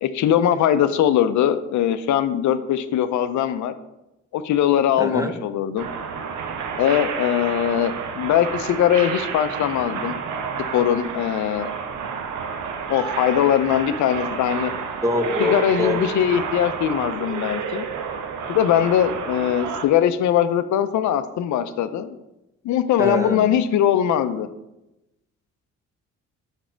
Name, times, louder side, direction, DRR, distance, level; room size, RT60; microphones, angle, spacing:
voice 1, 0.0-3.7 4.3-5.9 6.8-10.2 10.7-11.7 12.9-14.7 15.4-17.9 18.5-22.2 22.6-24.5, left 10 dB, 70° left, 10 dB, 0.5 m, -21 dB
voice 2, 5.0-5.3 15.0-16.0 23.0-23.5, left 1 dB, 10° right, 5 dB, 0.7 m, -24 dB
sound 1, 5.8-19.9, right 6 dB, 80° right, 0.7 m, -30 dB
6.1 x 4.2 x 4.5 m, 0.92 s
cardioid pair, 90°, 30 cm